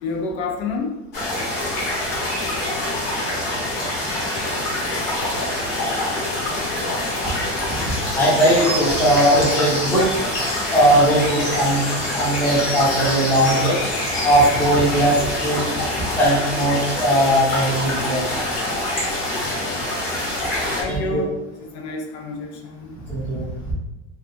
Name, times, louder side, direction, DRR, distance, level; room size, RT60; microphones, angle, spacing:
voice 1, 0.0-1.0 19.6-19.8 20.8-21.3 21.6-23.0, left 3 dB, 85° left, 2 dB, 0.6 m, -29 dB
sound 1, 1.1-20.8, left 1 dB, 30° left, 0.9 m, -25 dB
voice 2, 8.2-10.1 10.7-11.8 12.1-13.8 14.2-15.7 16.2-18.2 18.6-18.7 20.8-21.3 23.1-23.7, right 1 dB, 5° left, -7 dB, 0.6 m, -19 dB
2.7 x 2.3 x 2.5 m, 0.99 s
cardioid pair, 165°, 33 cm